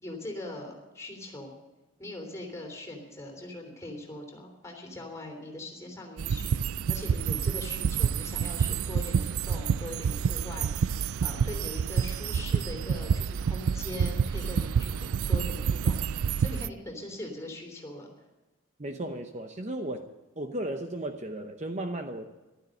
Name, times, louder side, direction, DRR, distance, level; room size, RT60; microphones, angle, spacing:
voice 1, 0.0-1.5 2.0-18.1, left 1 dB, 15° left, 0 dB, 3.4 m, -41 dB
sound 1, 6.2-16.7, right 7 dB, 90° right, 0.4 m, -28 dB
voice 2, 18.8-20.1 20.4-22.2, right 1 dB, 35° right, 6 dB, 0.8 m, -35 dB
14.5 x 12.5 x 6.6 m, 1.1 s
head